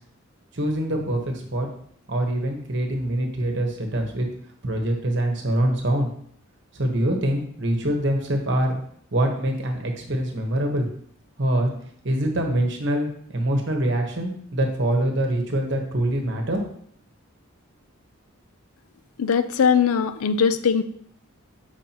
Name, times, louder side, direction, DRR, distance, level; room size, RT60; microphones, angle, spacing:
voice 1, 0.5-1.7 2.1-4.3 4.6-6.1 6.7-8.8 9.1-10.9 11.4-11.7 12.0-16.6, right 1 dB, 55° right, 3 dB, 1.1 m, -24 dB
voice 2, 19.2-20.8, left 6 dB, 85° left, 12 dB, 0.4 m, -20 dB
7.2 x 4.9 x 2.9 m, 0.62 s
head